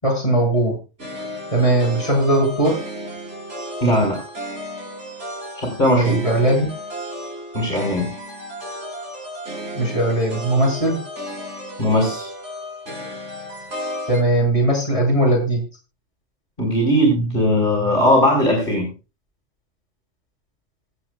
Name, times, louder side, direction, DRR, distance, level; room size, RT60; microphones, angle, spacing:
voice 1, 0.0-0.8 1.5-2.8 5.9-6.7 9.8-11.0 14.1-15.6, right 1 dB, 25° left, -2 dB, 8.2 m, -19 dB
sound 1, 1.0-14.2, equal, 75° right, 4.9 m, -33 dB
voice 2, 3.8-4.2 5.6-6.2 7.5-8.1 11.8-12.3 16.6-18.9, equal, 50° left, -2 dB, 5.6 m, -18 dB
26.0 x 8.8 x 2.4 m, 0.31 s
omnidirectional pair, 1.2 m